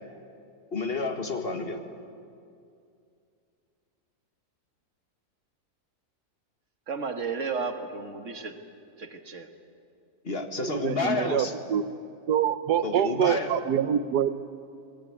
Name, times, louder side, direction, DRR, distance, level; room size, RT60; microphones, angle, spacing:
voice 1, 0.7-1.8 10.2-11.5 12.8-13.5, left 3 dB, 35° left, 6 dB, 1.8 m, -30 dB
voice 2, 6.9-8.6 9.0-9.5, right 4 dB, 50° right, 6 dB, 1.8 m, -33 dB
voice 3, 10.6-11.8 12.3-14.3, right 9 dB, 80° right, 12 dB, 1.4 m, -25 dB
24.0 x 18.5 x 9.5 m, 2.5 s
omnidirectional pair, 1.7 m